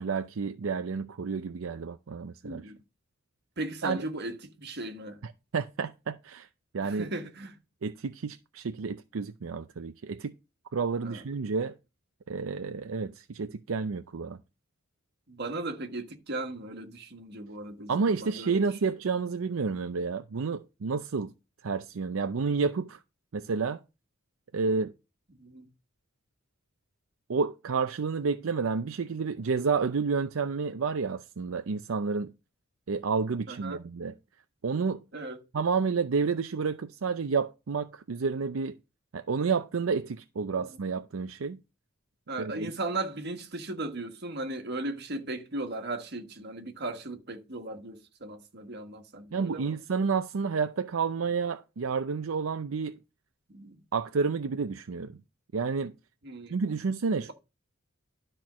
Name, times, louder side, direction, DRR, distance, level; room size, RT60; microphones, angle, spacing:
voice 1, 0.0-2.7 3.8-4.0 5.2-6.5 6.7-7.1 7.8-10.3 10.7-11.7 12.3-14.4 17.9-21.3 21.6-23.0 23.3-23.8 24.5-24.9 27.3-32.3 32.9-34.1 34.6-35.0 35.5-38.8 39.1-41.6 42.4-42.7 49.3-53.0 53.9-55.2 55.5-55.9 56.5-57.3, right 5 dB, 75° right, 0.5 m, -30 dB
voice 2, 2.4-2.8 3.6-5.2 6.8-7.6 11.0-11.2 15.3-18.9 25.3-25.7 33.5-33.8 35.1-35.4 40.6-40.7 42.3-49.8 53.5-53.8 56.2-56.6, right 2 dB, 50° right, 1.6 m, -37 dB
12.0 x 4.4 x 6.2 m
head